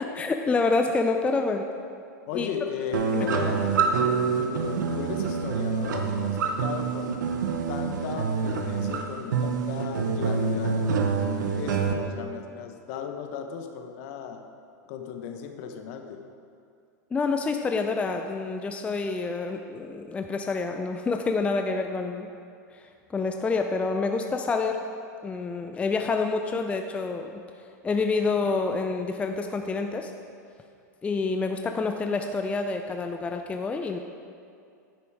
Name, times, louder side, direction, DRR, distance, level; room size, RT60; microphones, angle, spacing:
voice 1, 0.0-1.7 2.3-2.5 3.1-3.3 17.1-22.3 22.7-24.8 25.2-27.4 27.8-30.1 31.0-34.0, left 4 dB, 15° left, 5 dB, 0.4 m, -27 dB
voice 2, 2.3-7.2 7.7-10.8 11.6-14.4 14.9-16.2, left 7 dB, 55° left, 6 dB, 0.9 m, -36 dB
sound 1, 2.9-11.9, right 5 dB, 80° right, 0.9 m, -26 dB
10.0 x 5.9 x 4.7 m, 2.4 s
hypercardioid pair, 120°, 10 cm